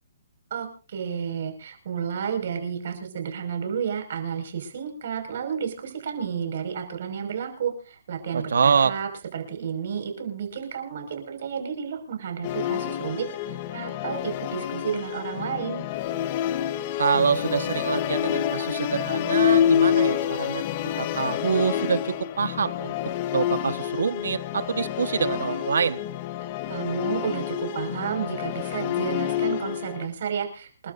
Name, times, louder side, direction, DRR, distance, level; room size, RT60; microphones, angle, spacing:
voice 1, 0.5-15.8 26.7-30.9, right 7 dB, 55° right, 5 dB, 5.6 m, -31 dB
voice 2, 8.3-8.9 17.0-20.6 21.0-22.9 23.3-26.0, right 6 dB, 80° right, 12 dB, 1.4 m, -25 dB
Musical instrument, 12.4-30.1, left 10 dB, 35° left, 1.1 m, -27 dB
29.0 x 12.5 x 2.7 m, 0.37 s
hypercardioid pair, 160°, 0 cm